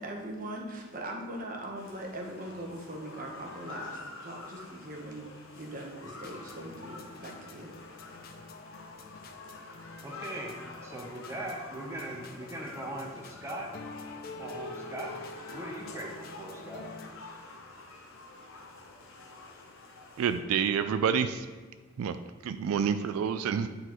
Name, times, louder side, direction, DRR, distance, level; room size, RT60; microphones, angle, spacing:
voice 1, 0.0-5.3 5.5-7.7, right 1 dB, 40° right, 0 dB, 0.9 m, -41 dB
sound 1, 1.7-20.4, left 3 dB, 70° left, 0.8 m, -48 dB
sound 2, 6.0-17.1, left 3 dB, 45° left, 0.4 m, -47 dB
voice 2, 10.0-10.5 10.8-13.7 14.4-15.1 15.5-16.9, right 1 dB, 15° right, -1 dB, 0.7 m, -40 dB
voice 3, 20.2-21.5 22.0-22.2 22.4-23.7, right 7 dB, 90° right, 10 dB, 0.3 m, -28 dB
9.0 x 4.0 x 3.0 m, 1.4 s
head